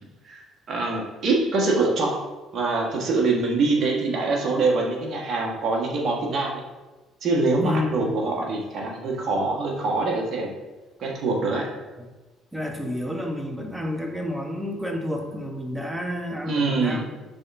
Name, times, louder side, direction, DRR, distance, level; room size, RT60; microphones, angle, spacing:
voice 1, 0.3-2.2 2.5-6.5 7.2-10.5 11.0-11.7 16.5-17.0, right 3 dB, 50° right, 0 dB, 1.5 m, -24 dB
voice 2, 7.6-8.1 12.0-12.1 12.5-17.1, left 1 dB, 10° right, 2 dB, 1.3 m, -30 dB
10.5 x 3.6 x 2.7 m, 1.1 s
figure-of-eight pair, 50°, 0 cm